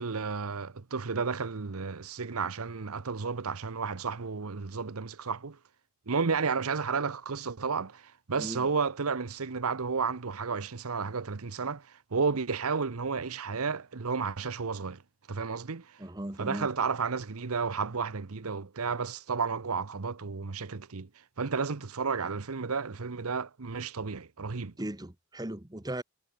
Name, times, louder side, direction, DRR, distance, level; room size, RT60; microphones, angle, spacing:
voice 1, 0.0-5.6 6.1-15.0 15.3-16.0 16.4-21.1 21.4-24.7, right 5 dB, 80° right, 0.9 m, -32 dB
voice 2, 16.0-16.7 24.8-26.0, right 1 dB, 15° right, 1.2 m, -37 dB
head